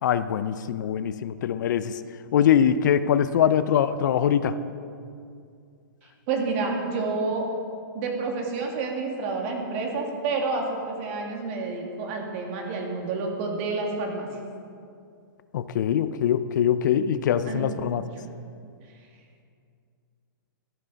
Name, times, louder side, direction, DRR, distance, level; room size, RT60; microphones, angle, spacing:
voice 1, 0.0-2.0 2.3-4.6 15.5-18.0, left 9 dB, 60° left, 13 dB, 0.5 m, -23 dB
voice 2, 6.3-7.4 7.9-14.3 17.5-17.8, right 3 dB, 40° right, 1 dB, 2.2 m, -29 dB
13.5 x 11.0 x 4.1 m, 2.4 s
hypercardioid pair, 150°, 11 cm